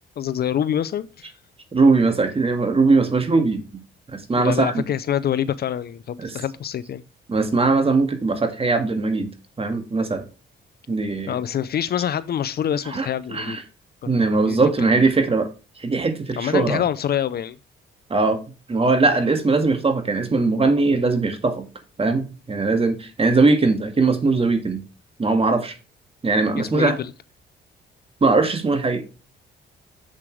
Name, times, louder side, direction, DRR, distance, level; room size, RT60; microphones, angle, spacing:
voice 1, 0.2-1.3 4.4-7.0 11.3-13.6 14.0-14.2 14.4-14.9 16.4-17.6 26.6-27.1, left 9 dB, 55° left, 0.6 m, -26 dB
voice 2, 1.7-3.6 4.1-4.8 6.2-6.3 7.3-9.3 9.6-10.3 10.9-11.4 12.9-13.6 14.1-15.5 15.8-16.8 18.1-18.4 18.7-21.7 22.0-24.8 25.2-25.7 26.2-27.0 28.2-29.0, right 3 dB, 30° right, 2.0 m, -20 dB
7.7 x 7.3 x 3.2 m
cardioid pair, 90°, 20 cm